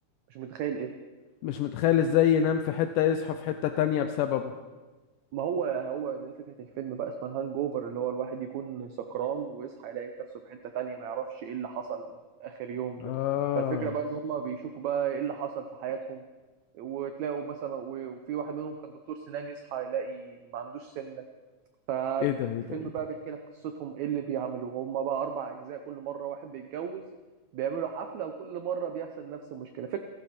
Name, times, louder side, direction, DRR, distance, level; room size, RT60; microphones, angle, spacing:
voice 1, 0.3-0.9 5.3-10.1 10.5-12.1 12.4-13.1 13.5-16.2 16.7-21.2 21.9-22.3 22.7-27.0 27.5-30.0, right 8 dB, 70° right, 6 dB, 2.0 m, -34 dB
voice 2, 1.4-4.5 13.0-13.9 22.2-22.8, left 10 dB, 85° left, 7 dB, 2.3 m, -26 dB
28.0 x 11.5 x 4.3 m, 1.2 s
omnidirectional pair, 3.8 m